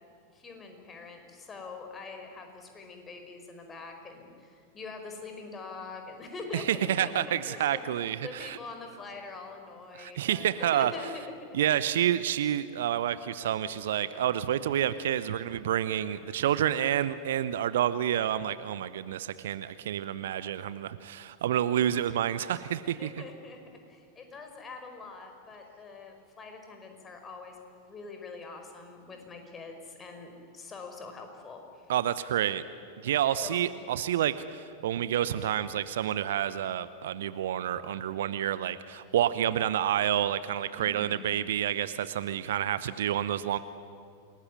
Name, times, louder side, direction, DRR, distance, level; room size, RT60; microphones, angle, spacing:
voice 1, 0.3-7.8 8.2-11.2 22.8-23.6 23.9-31.9 33.4-33.8 40.8-41.2, left 4 dB, 20° left, 4 dB, 5.0 m, -44 dB
voice 2, 6.5-8.6 10.0-10.9 11.5-23.1 31.9-32.6 33.0-43.6, right 11 dB, 60° right, 15 dB, 0.9 m, -29 dB
27.5 x 19.5 x 9.5 m, 2.3 s
figure-of-eight pair, 90°, 0 cm